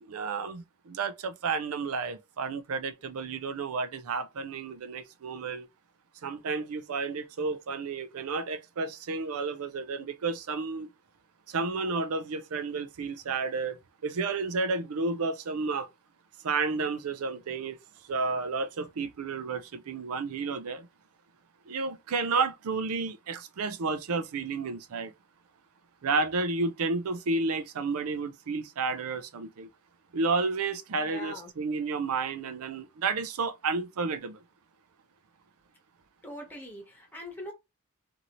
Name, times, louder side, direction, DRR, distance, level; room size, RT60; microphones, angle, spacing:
voice 1, 0.0-5.7 6.2-10.9 11.5-15.9 16.4-17.8 18.1-20.9 21.7-25.1 26.0-29.7 30.1-34.4, right 4 dB, 70° right, 0.5 m, -31 dB
voice 2, 30.9-31.5 36.2-37.5, left 1 dB, 10° left, 1.1 m, -42 dB
2.7 x 2.6 x 2.9 m
head